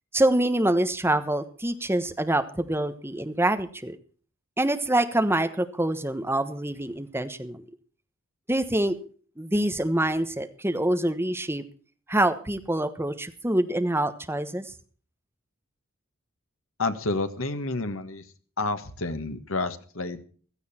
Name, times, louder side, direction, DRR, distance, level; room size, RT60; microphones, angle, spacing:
voice 1, 0.1-4.0 4.6-7.6 8.5-9.0 9.4-11.6 12.1-14.7, right 1 dB, 10° right, 9 dB, 1.2 m, -25 dB
voice 2, 16.8-18.2 18.6-20.2, left 3 dB, 70° left, 9 dB, 1.6 m, -29 dB
16.0 x 13.5 x 4.3 m, 0.42 s
head